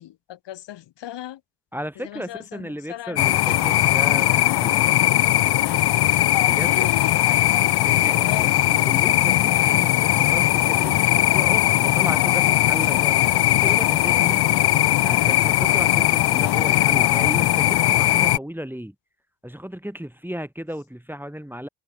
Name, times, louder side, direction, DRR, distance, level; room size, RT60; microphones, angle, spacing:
voice 1, 0.0-1.4 2.0-3.8 6.5-7.4 8.2-8.6, left 13 dB, 90° left, 1.8 m, -37 dB
voice 2, 1.7-4.8 6.4-6.9 7.8-14.5 15.0-18.9 19.4-21.7, equal, 5° right, 1.4 m, -35 dB
sound 1, 3.2-18.4, left 15 dB, 65° left, 0.6 m, -19 dB
supercardioid pair, 45°, 41 cm